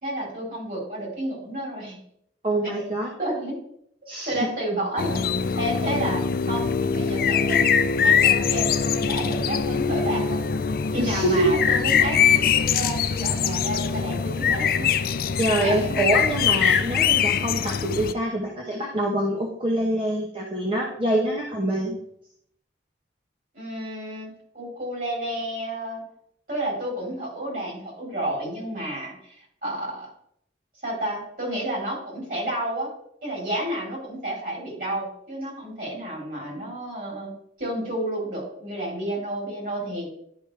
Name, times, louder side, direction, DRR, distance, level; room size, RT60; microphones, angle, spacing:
voice 1, 0.0-2.0 3.2-3.6 4.3-5.3 5.6-7.6 8.0-10.4 10.9-14.9 15.6-16.1 23.5-26.0 26.5-30.1 30.8-32.9 33.2-37.3 37.6-40.1, right 1 dB, 50° right, -3 dB, 3.6 m, -31 dB
voice 2, 2.4-3.1 4.1-4.5 11.0-11.6 15.4-22.0, right 1 dB, 30° right, -1 dB, 0.9 m, -25 dB
sound 1, 5.0-18.1, left 7 dB, 50° left, 0.4 m, -22 dB
11.0 x 5.2 x 3.3 m, 0.70 s
head